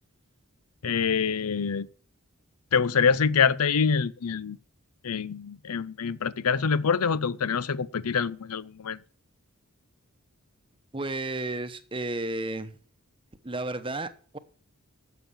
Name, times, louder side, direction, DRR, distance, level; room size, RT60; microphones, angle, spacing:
voice 1, 0.8-1.9 2.7-4.6 5.0-9.0, left 6 dB, 85° left, 0.6 m, -25 dB
voice 2, 10.9-12.8 13.4-14.4, right 2 dB, 25° right, 0.9 m, -32 dB
12.5 x 7.4 x 7.2 m
head